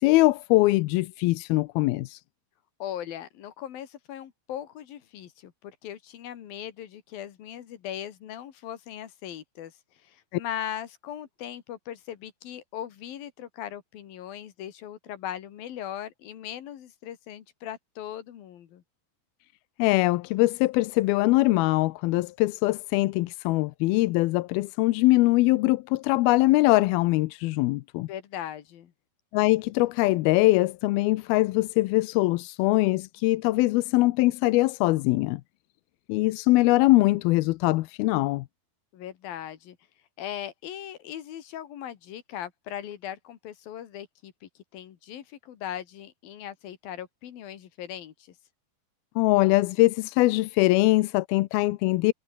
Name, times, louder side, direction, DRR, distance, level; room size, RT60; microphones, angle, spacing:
voice 1, 0.0-2.2 19.8-28.1 29.3-35.4 36.1-38.5 49.2-52.1, left 20 dB, 85° left, 2.5 m, -22 dB
voice 2, 2.8-9.7 10.0-18.8 28.1-28.9 38.9-39.8 40.2-48.1, left 11 dB, 65° left, 3.7 m, -39 dB
omnidirectional pair, 4.6 m